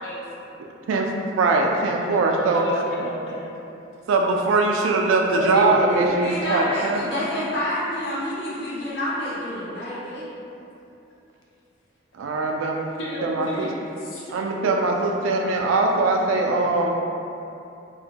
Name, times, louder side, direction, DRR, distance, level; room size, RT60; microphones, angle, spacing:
voice 1, 0.0-0.6 1.9-3.5 13.0-14.6, left 1 dB, 85° left, -4 dB, 0.5 m, -35 dB
voice 2, 0.9-2.7 4.1-7.0 12.1-12.9 13.2-13.7 14.3-16.9, right 3 dB, 90° right, 1 dB, 0.3 m, -21 dB
voice 3, 5.3-10.2, left 1 dB, 55° left, -9 dB, 0.8 m, -28 dB
2.5 x 2.0 x 2.8 m, 2.8 s
head